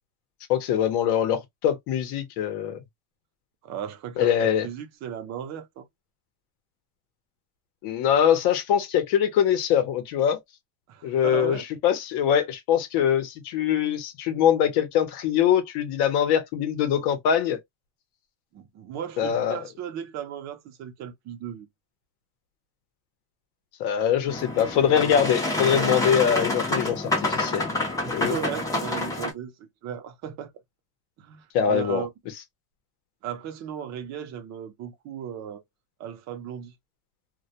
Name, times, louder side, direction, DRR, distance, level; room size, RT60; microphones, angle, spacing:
voice 1, 0.5-2.8 4.2-4.7 7.8-10.4 11.0-17.6 19.2-19.6 23.8-27.7 28.1-28.4 31.5-32.0, left 9 dB, 65° left, 0.7 m, -23 dB
voice 2, 3.6-4.4 4.6-5.8 10.9-11.6 18.5-21.7 28.0-30.5 31.2-32.1 33.2-35.6 36.0-36.7, right 9 dB, 40° right, 0.5 m, -36 dB
Boat Water vehicle, 24.3-29.3, left 2 dB, 10° left, 0.5 m, -27 dB
2.1 x 2.1 x 2.7 m
cardioid pair, 165°, 44 cm